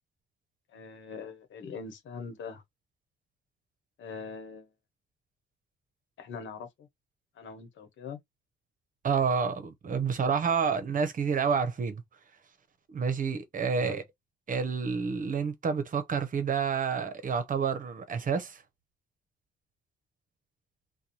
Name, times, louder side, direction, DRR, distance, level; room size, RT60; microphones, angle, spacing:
voice 1, 0.7-2.6 4.0-4.7 6.2-6.9 7.3-8.2 13.7-14.0, left 5 dB, 70° left, 1.0 m, -42 dB
voice 2, 9.0-12.0 12.9-14.0 14.5-18.6, right 6 dB, 40° right, 0.9 m, -29 dB
2.6 x 2.2 x 3.0 m
cardioid pair, 90°, 20 cm